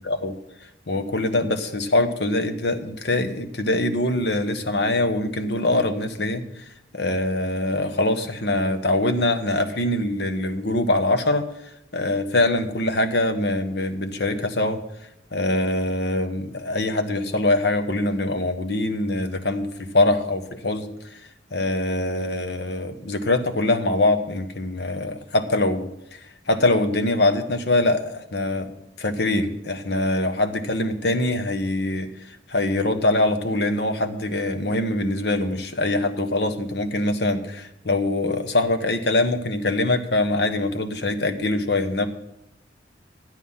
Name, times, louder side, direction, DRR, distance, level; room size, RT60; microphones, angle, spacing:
voice 1, 0.0-0.3 0.9-6.6 6.9-11.5 11.9-14.8 15.3-20.9 21.5-26.2 26.5-28.7 29.0-32.1 32.5-42.1, left 2 dB, 65° left, 8 dB, 1.2 m, -23 dB
13.5 x 9.2 x 5.6 m, 0.82 s
head